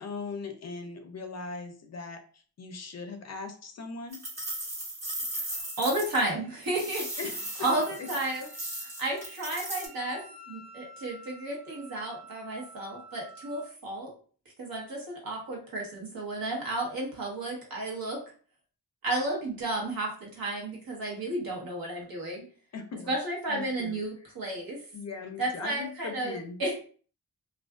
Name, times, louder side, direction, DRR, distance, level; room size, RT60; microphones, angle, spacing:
voice 1, 0.0-2.2 2.6-4.2 7.2-7.7 8.0-8.4 22.7-23.1 23.5-24.0 24.9-26.6, left 4 dB, 50° left, 6 dB, 0.4 m, -39 dB
sound 1, 4.1-6.3 6.6-9.9, right 1 dB, 45° right, 1.1 m, -37 dB
Wind instrument woodwind instrument, 5.5-13.7, right 1 dB, 20° right, 1.1 m, -52 dB
voice 2, 5.8-7.1 7.6-8.5 8.8-10.2 10.5-14.1 14.6-18.2 19.0-22.4 23.1-24.8 25.4-26.7, right 2 dB, 70° right, -2 dB, 1.1 m, -32 dB
2.4 x 2.3 x 2.2 m, 0.41 s
wide cardioid pair, 110°, 36 cm